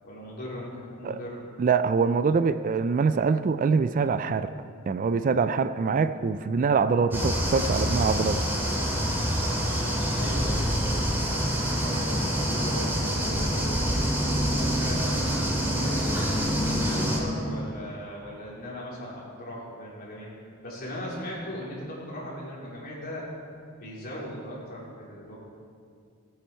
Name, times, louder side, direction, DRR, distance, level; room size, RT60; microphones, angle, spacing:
voice 1, 0.0-1.4 10.2-11.1 11.4-15.1 15.7-20.3 20.6-23.3 23.8-25.4, equal, 45° left, -5 dB, 3.5 m, -38 dB
voice 2, 1.6-4.5 4.9-8.4, right 5 dB, 40° right, 12 dB, 0.3 m, -24 dB
sound 1, 7.1-17.2, equal, 10° right, 2.4 m, -26 dB
17.0 x 9.0 x 4.5 m, 2.3 s
head